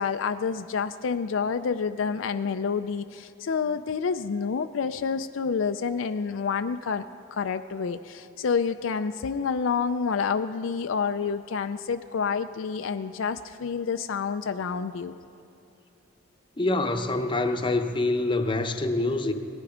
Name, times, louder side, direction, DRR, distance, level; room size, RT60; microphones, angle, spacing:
voice 1, 0.0-7.0 7.3-15.2, left 5 dB, 70° left, 9 dB, 0.4 m, -28 dB
voice 2, 16.6-19.3, left 2 dB, 25° left, 6 dB, 0.8 m, -25 dB
18.5 x 12.0 x 5.0 m, 2.9 s
head